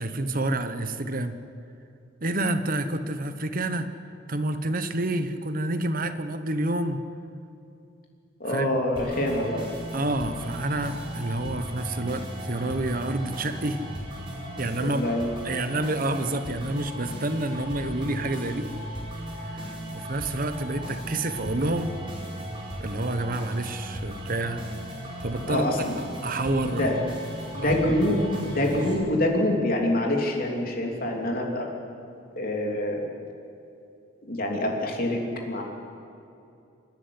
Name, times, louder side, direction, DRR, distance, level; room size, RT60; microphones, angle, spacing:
voice 1, 0.0-1.4 2.2-3.9 4.3-7.0 8.5-8.7 9.9-13.8 14.6-15.1 15.4-18.7 19.4-22.0 22.8-24.6 25.2-27.1 27.6-27.8, right 2 dB, 45° right, 9 dB, 1.1 m, -28 dB
voice 2, 8.4-9.6 14.8-15.3 18.2-18.3 25.4-26.0 26.8-27.0 27.5-31.7 32.4-33.1 34.2-35.6, left 1 dB, 50° left, 0 dB, 3.2 m, -26 dB
sound 1, 9.0-28.9, right 1 dB, 25° right, 4.8 m, -37 dB
26.5 x 10.5 x 9.9 m, 2.7 s
head